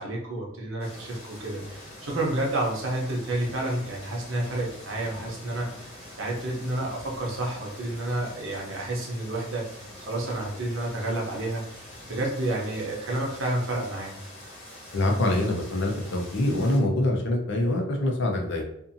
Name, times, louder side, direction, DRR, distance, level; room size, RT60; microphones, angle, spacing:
voice 1, 0.0-14.1, right 1 dB, 80° right, -2 dB, 0.8 m, -30 dB
sound 1, 0.8-16.8, left 1 dB, 30° left, 1.1 m, -45 dB
voice 2, 14.9-18.6, left 1 dB, 60° left, 1 dB, 0.6 m, -25 dB
2.6 x 2.5 x 2.6 m, 0.76 s
head